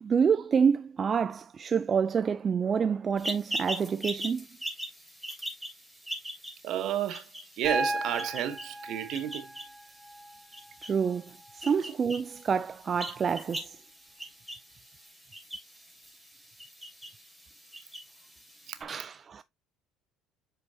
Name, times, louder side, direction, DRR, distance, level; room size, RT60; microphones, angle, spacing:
voice 1, 0.0-4.5 10.8-13.8 18.8-19.4, right 6 dB, 40° right, 0.3 m, -28 dB
sound 1, 3.2-18.8, right 1 dB, ahead, 3.2 m, -42 dB
voice 2, 6.6-7.2 7.6-9.5 18.7-18.8, right 11 dB, 65° right, 1.1 m, -31 dB
Piano, 7.6-11.6 13.2-13.3, right 1 dB, 25° right, 2.2 m, -36 dB
7.6 x 5.1 x 2.7 m
hypercardioid pair, 65°, 0 cm